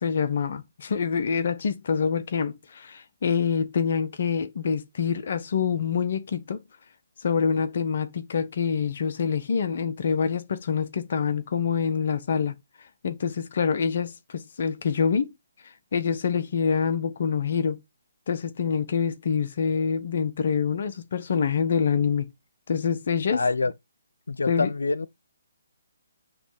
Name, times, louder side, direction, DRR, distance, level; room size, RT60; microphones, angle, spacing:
voice 1, 0.0-6.6 7.2-12.5 13.0-15.3 15.9-17.8 18.3-22.3 22.7-23.4 24.5-24.7, left 6 dB, 55° left, 0.9 m, -26 dB
voice 2, 23.3-23.7 24.3-25.1, left 3 dB, 75° left, 0.5 m, -26 dB
9.6 x 3.2 x 5.5 m
figure-of-eight pair, 140°, 0 cm